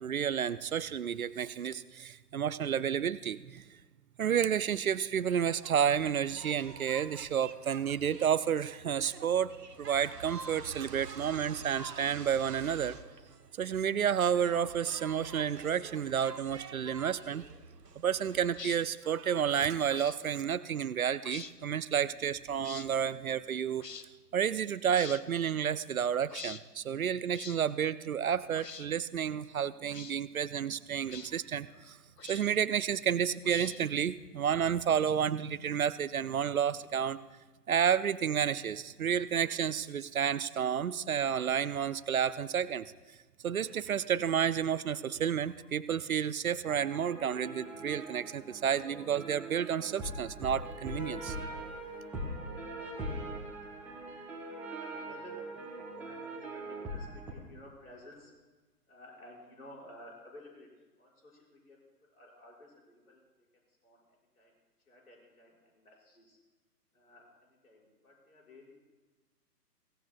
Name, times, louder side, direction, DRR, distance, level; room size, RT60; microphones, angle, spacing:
voice 1, 0.0-3.6 4.2-9.5 9.8-13.0 13.6-17.4 18.0-23.8 24.3-32.0 32.2-37.2 37.7-42.9 43.4-51.4, right 8 dB, 60° right, 16 dB, 0.5 m, -31 dB
sound 1, 5.6-18.9, right 4 dB, 80° right, 0.9 m, -48 dB
sound 2, 18.5-18.8 19.9-20.2 21.2-21.5 22.6-22.9 23.8-24.1 24.9-25.2 26.3-26.6 27.3-27.6 28.5-28.9 29.9-30.2 31.1-31.3 32.2-32.6 33.4-34.0, left 6 dB, 85° left, 0.8 m, -45 dB
sound 3, 46.6-57.3, right 1 dB, 5° right, 0.9 m, -41 dB
voice 2, 54.6-58.3 58.9-60.7 61.0-63.2 63.8-64.5 64.9-66.4 66.9-68.7, left 1 dB, 65° left, -3 dB, 6.0 m, -54 dB
23.5 x 17.0 x 2.4 m, 1.2 s
figure-of-eight pair, 130°, 48 cm